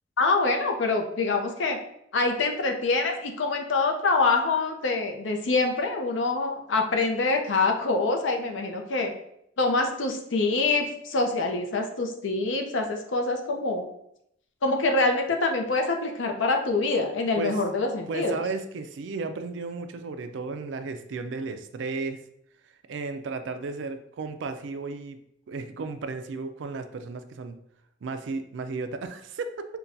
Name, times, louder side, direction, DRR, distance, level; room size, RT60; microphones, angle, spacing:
voice 1, 0.2-1.8 2.1-9.1 9.6-13.9 14.6-18.4, left 3 dB, 80° left, 3 dB, 0.6 m, -25 dB
voice 2, 18.1-22.2 22.9-25.2 25.5-27.6 28.0-29.7, right 3 dB, 70° right, 9 dB, 0.4 m, -34 dB
5.6 x 2.2 x 2.6 m, 0.75 s
head